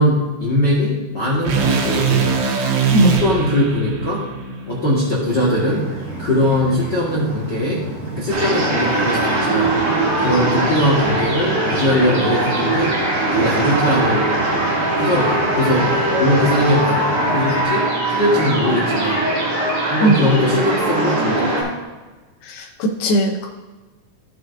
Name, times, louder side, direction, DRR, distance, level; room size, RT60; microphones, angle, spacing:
voice 1, 0.0-2.4 3.0-4.2 4.7-5.8 6.2-7.8 8.1-9.8 10.2-13.0 13.3-14.3 14.9-17.0 17.3-19.3 19.9-21.7, left 1 dB, 45° left, -7 dB, 1.5 m, -20 dB
sound 1, 1.4-5.6, right 6 dB, 85° right, 3.1 m, -22 dB
sound 2, 5.3-17.6, right 3 dB, 60° right, 4.8 m, -31 dB
sound 3, 8.3-21.6, right 2 dB, 45° right, 3.5 m, -20 dB
voice 2, 22.4-23.5, right 1 dB, 85° left, -1 dB, 2.8 m, -17 dB
15.0 x 6.4 x 2.6 m, 1.3 s
omnidirectional pair, 4.3 m